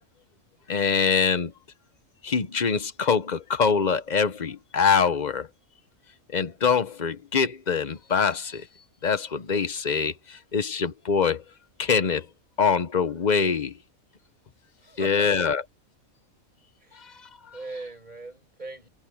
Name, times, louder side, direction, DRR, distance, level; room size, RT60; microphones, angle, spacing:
voice 1, 0.7-1.5 2.2-5.5 6.3-8.6 9.0-11.4 11.8-12.3 12.6-13.7 15.0-15.6, left 6 dB, 35° left, 0.9 m, -24 dB
voice 2, 14.8-15.5 16.8-17.2 17.5-18.9, right 2 dB, 30° right, 5.8 m, -40 dB
omnidirectional pair, 1.4 m